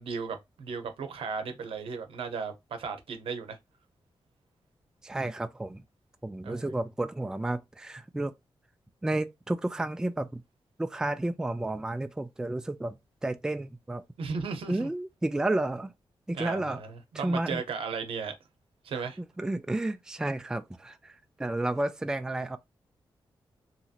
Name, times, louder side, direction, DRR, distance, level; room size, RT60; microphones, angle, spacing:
voice 1, 0.0-3.6 6.4-6.7 14.2-14.9 16.3-18.3 18.8-19.2, right 5 dB, 85° right, 0.7 m, -35 dB
voice 2, 5.0-5.8 6.2-8.3 9.0-10.4 10.8-13.0 13.2-14.0 14.7-15.9 16.3-16.8 17.1-17.6 19.2-21.1 21.4-22.6, right 2 dB, 5° right, 0.3 m, -31 dB
2.9 x 2.7 x 2.4 m
wide cardioid pair, 110°, 9 cm